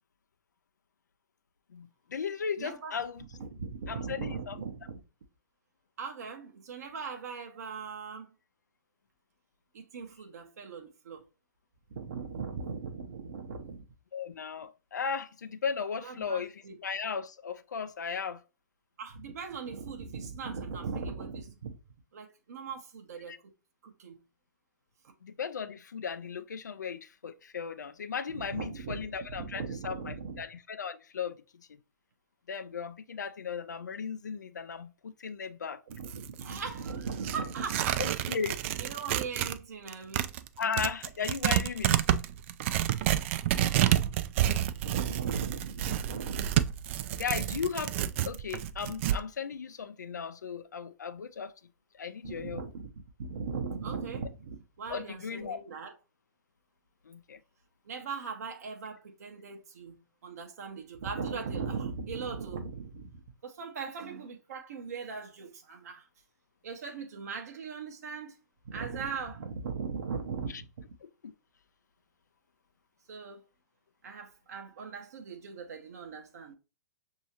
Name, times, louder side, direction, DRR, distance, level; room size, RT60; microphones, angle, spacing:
voice 1, 1.7-3.2 3.9-4.6 14.1-18.4 23.3-23.4 25.2-31.4 31.7-31.8 32.5-35.8 38.0-38.6 40.6-42.0 47.1-48.0 48.3-51.5 52.0-52.6 54.9-55.6 57.1-57.4 70.5-70.6 71.0-71.3, left 6 dB, 75° left, 0.5 m, -36 dB
voice 2, 2.6-3.0 3.4-5.0 6.0-8.3 9.7-11.2 11.9-13.8 16.0-16.8 19.0-21.8 22.1-23.4 23.8-24.2 25.0-25.1 28.3-30.4 35.9-38.1 38.8-40.3 43.5-44.0 44.8-46.5 52.2-52.9 53.2-56.0 57.9-66.1 66.6-68.4 68.6-70.7 73.1-73.4 74.0-76.6, right 5 dB, 60° right, 0.7 m, -39 dB
Tearing, 35.9-39.6 39.9-49.2, right 12 dB, 45° right, 0.3 m, -29 dB
6.2 x 2.8 x 2.8 m
figure-of-eight pair, 110°, 10 cm